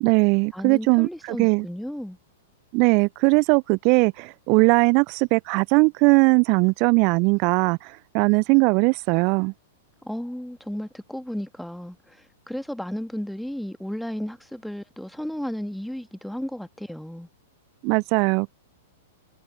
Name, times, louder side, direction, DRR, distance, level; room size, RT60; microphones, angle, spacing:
voice 1, 0.0-1.6 2.7-9.5 17.8-18.5, right 32 dB, 45° right, 0.4 m, -20 dB
voice 2, 0.5-2.2 10.0-17.3, equal, ahead, 1.7 m, -34 dB
figure-of-eight pair, 105°, 0 cm